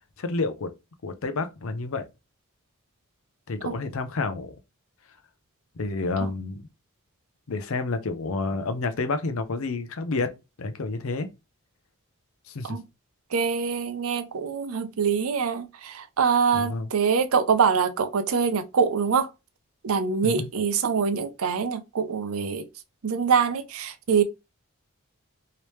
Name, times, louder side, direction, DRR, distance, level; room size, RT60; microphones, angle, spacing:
voice 1, 0.2-0.7 1.0-2.0 3.5-4.5 5.8-6.6 7.5-11.3 12.5-12.8 16.5-16.9 20.2-20.5, left 3 dB, 70° left, 0.6 m, -29 dB
voice 2, 13.3-19.3 19.8-22.6 23.0-24.2, right 6 dB, 70° right, 0.5 m, -24 dB
3.2 x 2.8 x 3.1 m
head